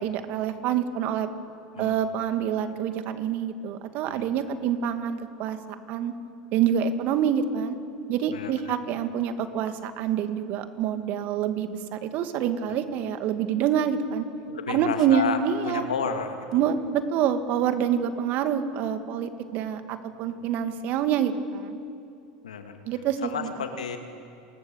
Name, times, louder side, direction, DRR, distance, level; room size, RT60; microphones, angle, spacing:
voice 1, 0.0-1.3 1.8-6.1 6.5-7.8 8.1-14.3 14.7-15.8 16.5-21.8 22.9-23.5, right 8 dB, 50° right, 8 dB, 2.1 m, -26 dB
voice 2, 8.3-8.7 14.5-15.4 15.7-16.5 22.4-22.8 23.2-24.0, left 6 dB, 80° left, 6 dB, 2.3 m, -31 dB
28.0 x 21.0 x 7.2 m, 2.5 s
hypercardioid pair, 85°, 4 cm